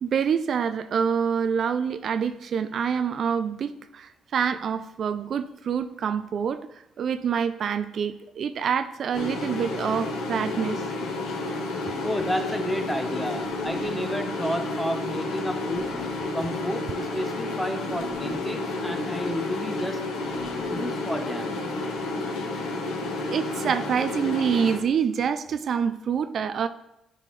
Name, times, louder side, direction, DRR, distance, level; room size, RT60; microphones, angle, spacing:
voice 1, 0.0-10.8 11.8-11.9 23.3-26.7, right 7 dB, 60° right, 11 dB, 0.3 m, -26 dB
sound 1, 9.1-24.8, left 2 dB, 85° left, 1.1 m, -31 dB
voice 2, 12.0-15.9 16.3-20.1 20.7-21.5, equal, 5° left, 7 dB, 0.8 m, -31 dB
sound 2, 13.4-14.0 15.6-16.3 17.9-18.5 20.3-20.9, left 3 dB, 50° left, 2.0 m, -43 dB
10.5 x 4.2 x 3.2 m, 0.88 s
cardioid pair, 90°, 0 cm